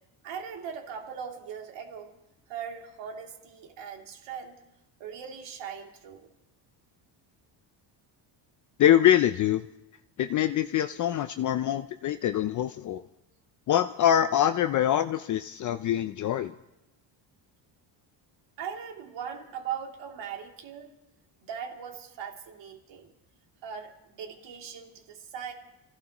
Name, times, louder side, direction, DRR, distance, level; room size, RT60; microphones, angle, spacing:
voice 1, 0.2-2.2 2.5-4.6 5.0-6.3 18.6-20.9 21.4-23.1 23.6-25.5, right 7 dB, 70° right, 1 dB, 2.9 m, -39 dB
voice 2, 8.8-9.6 10.2-13.0 13.7-16.5, left 11 dB, 45° left, 9 dB, 0.5 m, -24 dB
29.0 x 16.0 x 3.0 m, 0.90 s
cardioid pair, 125°, 45 cm